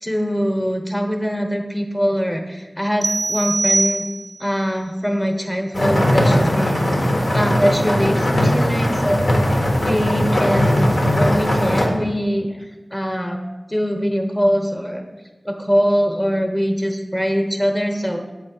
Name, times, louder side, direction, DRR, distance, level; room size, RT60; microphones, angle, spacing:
voice 1, 0.0-4.1 4.4-6.8 7.3-9.4 9.8-12.6 12.9-13.4 13.7-15.1 15.4-18.2, equal, 15° left, 4 dB, 0.9 m, -22 dB
sound 1, 3.0-4.5, right 2 dB, 50° right, 0.4 m, -22 dB
sound 2, 5.7-11.9, equal, 80° left, 1.2 m, -18 dB
7.5 x 4.4 x 4.4 m, 1.2 s
wide cardioid pair, 50°, 0 cm